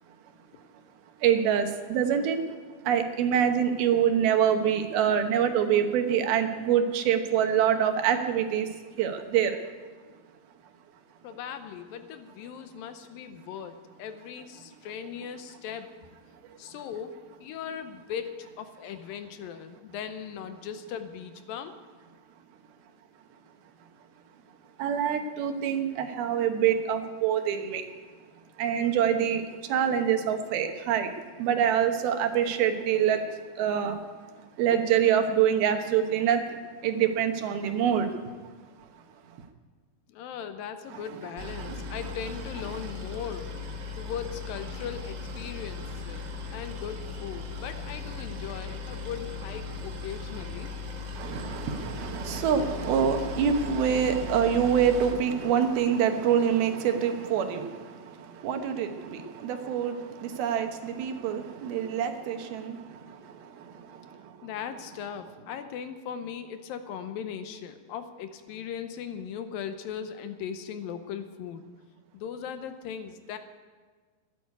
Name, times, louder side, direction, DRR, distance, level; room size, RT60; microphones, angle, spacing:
voice 1, 1.2-2.4 2.9-8.7 9.0-9.6 24.8-27.8 28.6-29.4 29.7-31.1 31.4-33.2 33.6-34.0 34.6-38.1 40.9-41.0 41.6-42.0 51.1-58.0 58.4-62.8, right 8 dB, 80° right, 6 dB, 3.0 m, -25 dB
voice 2, 11.2-15.9 16.6-17.1 17.4-21.7 40.1-43.5 44.0-46.2 46.5-50.7 64.4-71.7 72.1-73.4, left 8 dB, 80° left, 9 dB, 2.5 m, -38 dB
Boat Water vehicle, 41.4-55.1, left 4 dB, 60° right, 1.2 m, -38 dB
13.0 x 11.0 x 9.5 m, 1.5 s
omnidirectional pair, 4.3 m